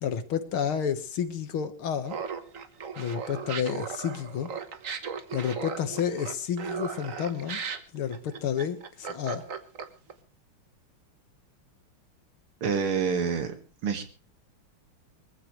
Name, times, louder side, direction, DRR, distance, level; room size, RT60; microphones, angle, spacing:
voice 1, 0.0-2.2 3.0-4.5 5.3-7.6 7.9-9.4, left 8 dB, 80° left, 10 dB, 2.3 m, -30 dB
Laughter, 2.1-10.1, right 6 dB, 45° right, 1.3 m, -36 dB
voice 2, 12.6-13.5 13.8-14.0, right 6 dB, 80° right, 7 dB, 2.7 m, -27 dB
24.0 x 15.0 x 3.2 m, 0.34 s
omnidirectional pair, 2.4 m